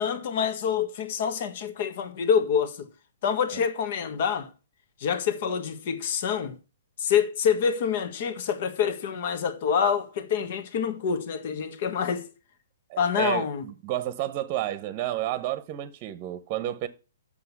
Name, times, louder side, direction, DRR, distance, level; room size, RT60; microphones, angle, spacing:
voice 1, 0.0-2.9 3.2-4.5 5.0-6.6 7.0-12.3 13.0-13.6, left 7 dB, 55° left, 1.6 m, -26 dB
voice 2, 12.9-16.9, right 13 dB, 35° right, 0.9 m, -31 dB
7.8 x 6.7 x 7.1 m
hypercardioid pair, 135°, 0 cm